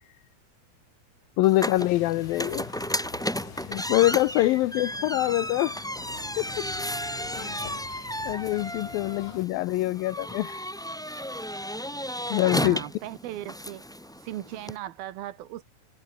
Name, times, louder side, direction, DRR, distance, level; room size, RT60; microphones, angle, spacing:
voice 1, 1.4-2.7 3.6-5.8 6.4-6.7 7.6-7.8 8.3-10.6 12.3-12.8, left 17 dB, 80° left, 2.4 m, -24 dB
sound 1, 1.4-14.8, equal, 5° left, 0.6 m, -34 dB
sound 2, 1.8-9.5, left 9 dB, 55° left, 3.2 m, -46 dB
voice 2, 12.6-13.8 14.2-15.6, right 13 dB, 80° right, 3.2 m, -37 dB
omnidirectional pair, 4.3 m